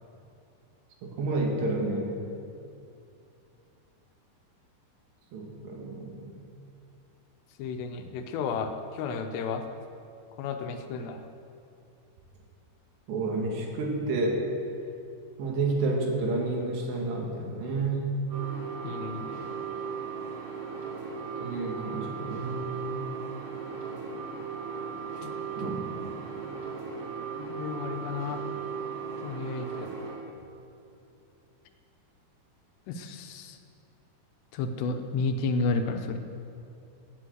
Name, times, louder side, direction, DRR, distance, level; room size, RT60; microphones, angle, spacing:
voice 1, 1.0-2.2 5.3-6.4 13.1-14.4 15.4-18.1 21.4-23.0 25.6-26.4, right 2 dB, 85° right, 0 dB, 4.0 m, -30 dB
voice 2, 7.6-9.6 10.4-11.2 18.8-19.5 25.2-25.3 25.6-25.7 27.4-28.5 29.2-29.9 32.9-33.6 34.5-36.2, left 4 dB, 90° left, 6 dB, 3.0 m, -32 dB
sound 1, 18.3-30.2, right 6 dB, 60° right, 3.7 m, -37 dB
16.5 x 7.8 x 7.9 m, 2.6 s
omnidirectional pair, 4.8 m